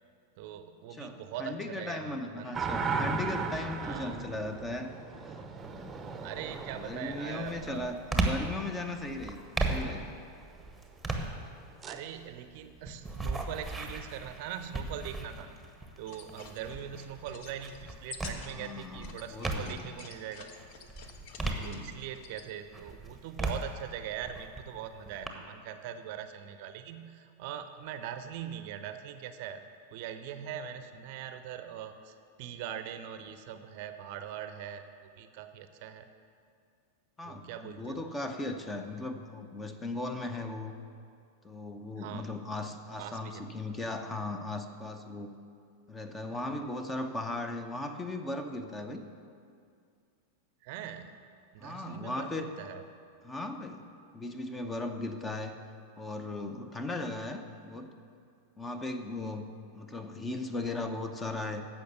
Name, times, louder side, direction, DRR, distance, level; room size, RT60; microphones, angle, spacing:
voice 1, 0.4-2.6 3.8-4.1 6.2-7.9 11.8-15.5 16.0-20.5 21.6-29.6 29.9-34.9 35.2-36.1 37.3-38.1 42.0-42.3 43.0-43.5 50.6-51.1 51.5-52.8, right 9 dB, 45° right, 9 dB, 0.6 m, -41 dB
voice 2, 0.9-4.9 5.2-5.3 5.7-6.1 6.7-9.4 9.7-10.1 18.5-19.9 21.4-21.9 37.2-40.7 41.4-45.4 45.9-49.0 51.6-52.5 53.2-53.8 54.1-55.6 56.0-57.9 58.6-59.5 59.7-61.7, left 2 dB, 15° left, 8 dB, 0.8 m, -37 dB
sound 1, 2.5-8.4 11.8-12.0, right 4 dB, 20° right, 0.8 m, -36 dB
sound 2, 5.6-6.0 6.5-20.0 20.4-22.3 22.7-25.3, right 2 dB, 5° right, 1.2 m, -37 dB
sound 3, 16.0-22.5, left 5 dB, 45° left, 1.0 m, -50 dB
14.5 x 5.7 x 6.8 m, 2.3 s
figure-of-eight pair, 90°, 0 cm